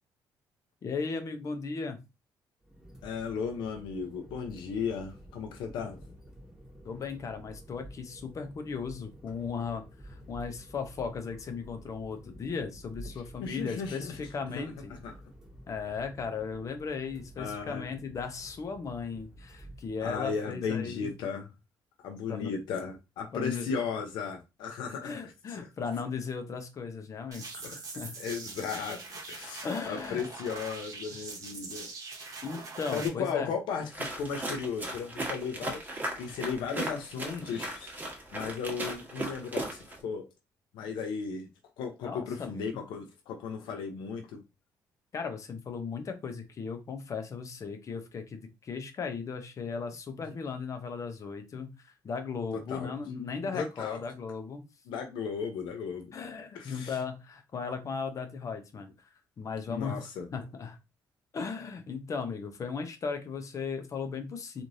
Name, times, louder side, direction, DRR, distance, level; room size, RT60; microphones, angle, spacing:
voice 1, 0.8-2.0 6.8-15.0 15.7-21.1 22.3-22.5 23.3-23.7 25.0-28.2 29.6-30.2 32.4-33.5 42.0-42.7 45.1-54.6 56.1-58.9 59.4-60.0 60.3-60.8 61.3-64.6, left 5 dB, 45° left, 0.7 m, -36 dB
sound 1, 2.6-20.3, right 1 dB, 5° right, 1.2 m, -51 dB
voice 2, 3.0-6.0 13.4-14.2 14.5-14.7 15.0-15.1 17.4-17.9 20.0-21.5 22.0-25.7 27.5-27.8 28.2-31.9 32.3-32.4 32.9-40.3 40.7-41.5 41.8-44.4 52.7-52.9 53.5-54.0 54.9-56.1 56.5-57.0 59.7-60.3, left 6 dB, 85° left, 0.6 m, -36 dB
sound 2, 27.3-33.1, right 3 dB, 50° right, 1.0 m, -43 dB
sound 3, 33.9-40.0, right 1 dB, 25° right, 1.2 m, -37 dB
3.1 x 2.5 x 2.6 m
cardioid pair, 95°, 8 cm